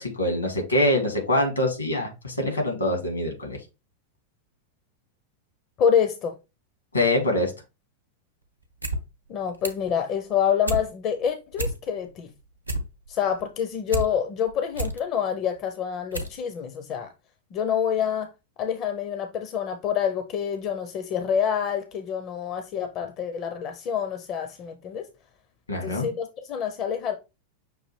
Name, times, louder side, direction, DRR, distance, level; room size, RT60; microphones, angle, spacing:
voice 1, 0.0-3.6 6.9-7.5 25.7-26.1, left 1 dB, 80° left, 1.6 m, -24 dB
voice 2, 5.8-6.3 9.3-12.3 13.1-17.1 17.5-18.3 18.6-25.0 25.8-27.1, left 8 dB, 35° left, 0.5 m, -27 dB
sound 1, 8.6-9.0 9.3-9.9 10.3-10.8 11.2-11.3 11.5-12.1 12.4-14.1 14.5-15.0 15.6-15.7 16.1-16.4 16.7-16.8, right 1 dB, 85° right, 0.7 m, -30 dB
6.1 x 2.5 x 3.1 m
figure-of-eight pair, 90°, 0 cm